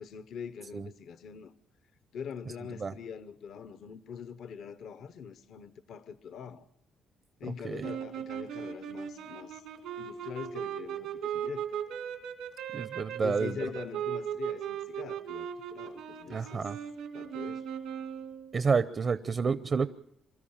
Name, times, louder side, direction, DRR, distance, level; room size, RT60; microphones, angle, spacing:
voice 1, 0.0-1.5 2.1-6.7 7.4-9.6 10.0-11.8 13.2-16.7 17.1-17.7, left 7 dB, 70° left, 0.9 m, -43 dB
sound 1, 7.8-18.5, right 9 dB, 85° right, 2.6 m, -38 dB
voice 2, 12.7-13.6 16.3-16.8 18.5-19.9, right 5 dB, 40° right, 0.7 m, -29 dB
24.5 x 13.0 x 8.8 m
cardioid pair, 90°, 0 cm